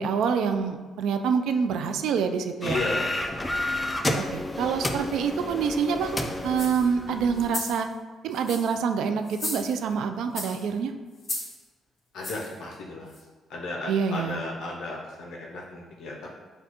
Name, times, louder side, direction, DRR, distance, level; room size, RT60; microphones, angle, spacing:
voice 1, 0.0-2.8 4.1-7.9 8.2-10.9 13.9-14.4, right 6 dB, 80° right, 7 dB, 0.3 m, -26 dB
voice 2, 2.6-3.9 12.1-13.2 13.5-16.3, left 2 dB, 80° left, -2 dB, 0.5 m, -35 dB
sound 1, 2.6-7.5, left 1 dB, 15° left, 0.4 m, -30 dB
sound 2, 6.5-6.9 7.4-7.8 8.3-8.8 9.3-9.9 10.4-10.7 11.2-11.6 12.2-12.5 13.1-13.2, left 2 dB, 40° left, 1.4 m, -35 dB
6.3 x 2.2 x 2.9 m, 1.4 s
cardioid pair, 90°, 0 cm